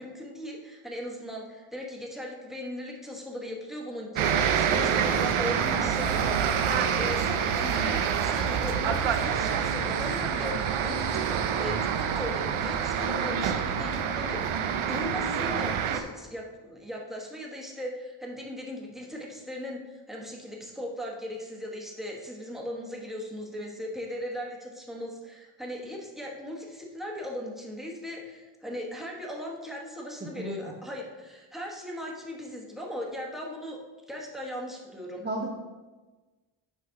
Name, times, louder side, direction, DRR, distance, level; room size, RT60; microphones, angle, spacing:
voice 1, 0.0-33.8 34.1-35.3, left 1 dB, ahead, -2 dB, 1.2 m, -38 dB
sound 1, 4.2-16.0, right 7 dB, 80° right, 0.7 m, -27 dB
voice 2, 30.2-30.7 35.2-35.5, right 1 dB, 20° right, -2 dB, 0.8 m, -34 dB
8.0 x 4.0 x 5.7 m, 1.3 s
wide cardioid pair, 140°, 48 cm